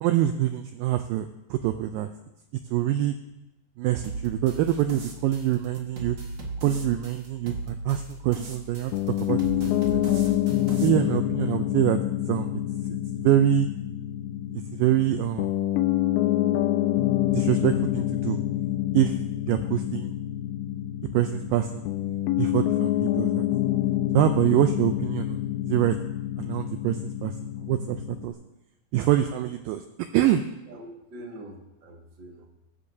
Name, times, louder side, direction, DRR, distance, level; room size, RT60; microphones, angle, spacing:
voice 1, 0.0-2.1 2.7-3.2 3.8-6.2 6.6-8.9 9.2-10.2 10.8-12.0 12.3-12.5 12.9-13.0 13.2-13.7 14.5-15.5 17.3-18.4 18.9-19.2 19.5-20.1 21.1-21.9 22.4-23.5 24.1-26.0 26.4-27.3 27.7-28.3 28.9-29.8 30.1-30.4, right 12 dB, 85° right, 8 dB, 2.1 m, -25 dB
sound 1, 4.0-10.9, right 2 dB, 60° right, 1.2 m, -37 dB
Piano, 8.9-28.3, left 13 dB, 80° left, 2.4 m, -27 dB
voice 2, 30.7-32.5, right 1 dB, 45° right, 0 dB, 1.7 m, -44 dB
21.5 x 10.0 x 2.7 m, 0.94 s
omnidirectional pair, 4.5 m